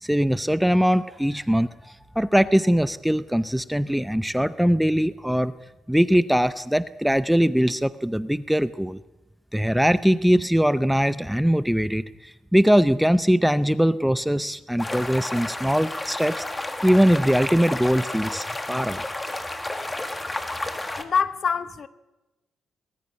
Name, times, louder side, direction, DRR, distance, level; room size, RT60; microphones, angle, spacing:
voice 1, 0.0-5.5 5.9-9.0 9.5-19.0, equal, ahead, 0.6 m, -21 dB
sound 1, 14.8-21.0, left 2 dB, 15° left, 1.8 m, -31 dB
voice 2, 21.0-21.9, left 6 dB, 45° left, 1.0 m, -25 dB
19.5 x 14.0 x 9.6 m
cardioid pair, 120°, 0 cm